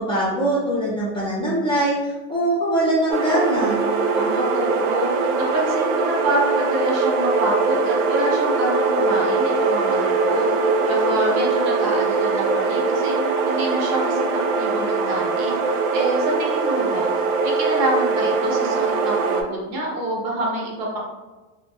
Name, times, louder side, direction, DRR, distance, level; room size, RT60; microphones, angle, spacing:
voice 1, 0.0-3.8, right 1 dB, 15° left, -8 dB, 0.5 m, -22 dB
sound 1, 3.1-19.4, right 4 dB, 85° right, 0.6 m, -21 dB
voice 2, 4.1-10.5 10.9-13.2 13.5-15.6 15.9-17.1 17.4-21.0, right 1 dB, 40° right, -2 dB, 0.7 m, -27 dB
2.8 x 2.2 x 2.8 m, 1.2 s
supercardioid pair, 150°, 40 cm